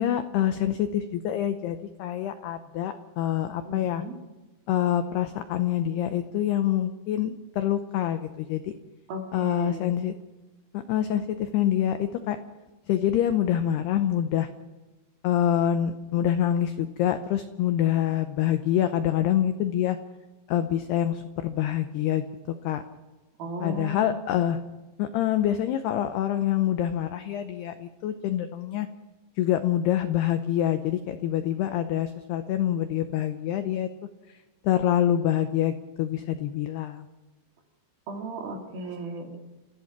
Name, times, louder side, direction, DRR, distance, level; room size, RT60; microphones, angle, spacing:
voice 1, 0.0-4.0 4.7-8.7 9.3-10.1 10.7-12.4 12.9-14.5 15.2-20.0 20.5-22.2 22.6-22.8 23.6-24.6 25.0-28.9 29.4-33.9 34.6-37.1, left 11 dB, 85° left, 8 dB, 2.3 m, -26 dB
voice 2, 3.6-4.2 9.1-9.8 23.4-24.1 38.1-39.4, right 1 dB, 50° right, 2 dB, 3.8 m, -35 dB
29.5 x 15.0 x 6.0 m, 1.2 s
omnidirectional pair, 5.9 m